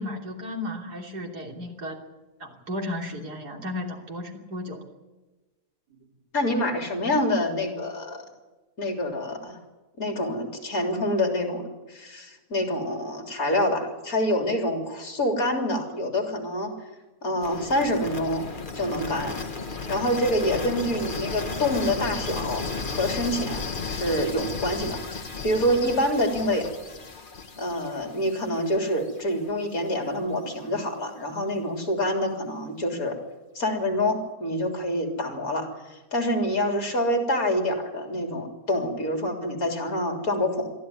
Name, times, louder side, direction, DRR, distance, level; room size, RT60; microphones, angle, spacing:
voice 1, 0.0-2.0 2.4-4.8 5.9-6.1, left 1 dB, 70° right, 2 dB, 3.7 m, -34 dB
voice 2, 6.3-8.2 8.8-9.6 10.0-16.7 17.2-18.4 18.7-19.3 19.9-22.6 22.9-23.6 23.9-26.6 27.6-33.2 33.6-40.7, left 1 dB, 60° left, 4 dB, 4.0 m, -26 dB
sound 1, 17.4-29.3, left 4 dB, 30° left, 1.6 m, -34 dB
23.0 x 14.5 x 9.5 m, 1.2 s
omnidirectional pair, 1.7 m